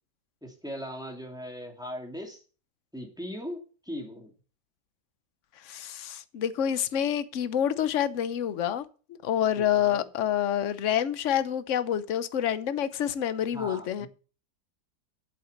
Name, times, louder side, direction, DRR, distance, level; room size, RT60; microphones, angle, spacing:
voice 1, 0.4-2.4 2.9-4.3 9.5-10.1 13.5-14.1, equal, ahead, 3.0 m, -39 dB
voice 2, 5.6-8.8 9.2-14.1, left 10 dB, 55° left, 1.0 m, -27 dB
8.3 x 8.1 x 7.0 m
omnidirectional pair, 1.9 m